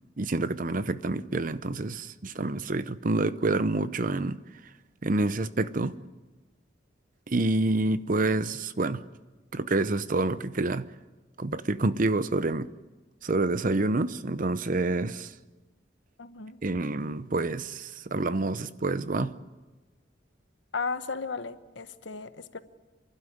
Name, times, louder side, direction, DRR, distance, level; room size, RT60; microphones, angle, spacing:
voice 1, 0.2-4.4 5.0-6.0 7.3-9.0 9.5-10.8 11.4-12.7 13.2-15.3 16.6-19.3, right 2 dB, 45° right, 0.8 m, -27 dB
voice 2, 16.2-16.6 20.7-22.6, left 4 dB, 85° left, 1.1 m, -35 dB
29.0 x 12.0 x 9.9 m
head